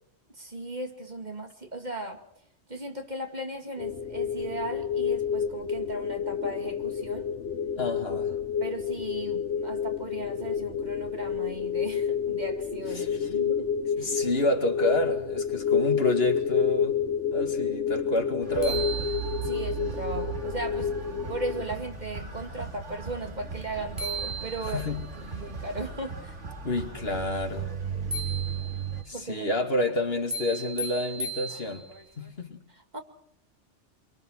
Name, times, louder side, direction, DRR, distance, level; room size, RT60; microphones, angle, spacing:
voice 1, 0.3-2.2 2.7-7.3 8.6-13.7 14.0-14.2 19.4-20.9 21.3-24.9 25.2-26.3 29.1-29.6 32.7-33.0, right 2 dB, 35° right, 4 dB, 2.3 m, -37 dB
sound 1, 3.8-21.7, left 7 dB, 80° left, 3.7 m, -29 dB
voice 2, 7.8-8.3 12.9-13.3 14.0-17.0 17.3-18.9 24.7-25.1 26.6-27.7 29.1-31.8 32.2-32.6, left 2 dB, 55° left, 5 dB, 2.5 m, -29 dB
sound 2, 18.2-18.3 18.6-19.7 23.6-23.7 24.0-25.0 28.1-29.0 30.3-32.0, right 3 dB, 15° right, 3.1 m, -36 dB
sound 3, 18.4-29.0, right 6 dB, 75° right, 2.7 m, -36 dB
26.0 x 24.0 x 6.5 m, 0.70 s
omnidirectional pair, 1.2 m